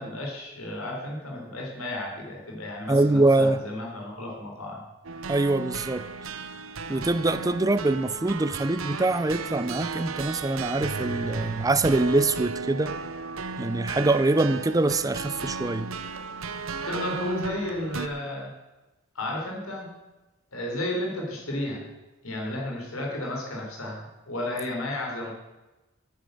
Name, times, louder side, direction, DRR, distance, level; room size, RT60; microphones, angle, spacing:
voice 1, 0.0-4.8 16.8-18.5 19.2-19.9 20.5-21.9 22.2-25.3, left 1 dB, 90° left, 0 dB, 3.6 m, -33 dB
voice 2, 2.9-3.6 5.3-6.0 6.9-12.9 13.6-15.9, right 2 dB, 15° right, 14 dB, 0.5 m, -24 dB
sound 1, 5.0-18.1, right 4 dB, 70° right, 0.8 m, -34 dB
10.5 x 8.9 x 7.7 m, 1.1 s
head